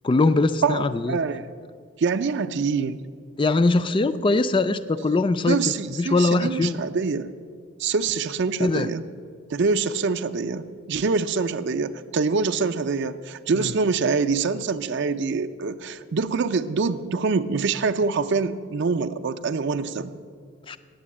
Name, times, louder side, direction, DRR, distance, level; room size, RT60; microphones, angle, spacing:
voice 1, 0.0-1.2 3.4-5.6 6.0-6.8 8.6-8.9 13.6-13.7 20.7-20.8, left 3 dB, 25° left, 13 dB, 0.3 m, -21 dB
voice 2, 0.6-1.5 2.0-3.0 5.5-7.3 7.8-9.0 9.5-20.2, right 4 dB, 55° right, 10 dB, 0.4 m, -25 dB
9.1 x 8.0 x 8.5 m, 2.1 s
head